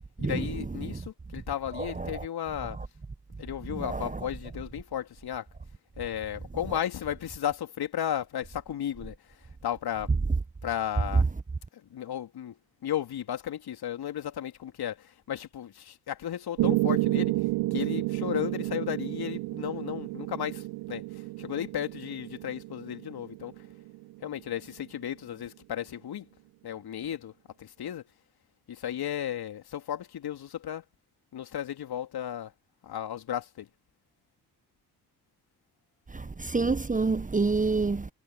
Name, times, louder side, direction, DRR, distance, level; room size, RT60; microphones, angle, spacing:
voice 1, 0.2-2.8 3.4-5.5 6.0-9.2 9.6-10.1 10.6-11.3 11.8-12.6 12.8-17.3 17.7-23.5 24.2-26.3 26.6-27.3 27.6-28.0 28.7-30.8 31.3-32.5 32.8-33.7, left 10 dB, 50° left, 3.6 m, -34 dB
voice 2, 1.8-2.2 3.7-4.2 36.1-38.1, right 4 dB, 15° right, 1.3 m, -28 dB
Piano, 16.6-24.6, right 20 dB, 65° right, 3.1 m, -31 dB
figure-of-eight pair, 45°, 47 cm